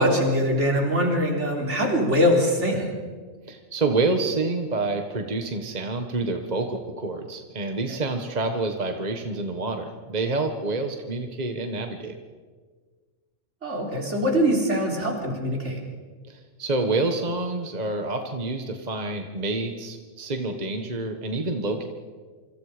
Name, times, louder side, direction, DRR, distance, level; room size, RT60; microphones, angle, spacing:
voice 1, 0.0-2.9 7.9-8.0 13.6-15.8, equal, 65° right, 0 dB, 4.3 m, -23 dB
voice 2, 3.5-12.1 16.3-21.8, right 3 dB, 35° right, 5 dB, 1.5 m, -28 dB
28.0 x 25.5 x 5.1 m, 1.5 s
omnidirectional pair, 1.3 m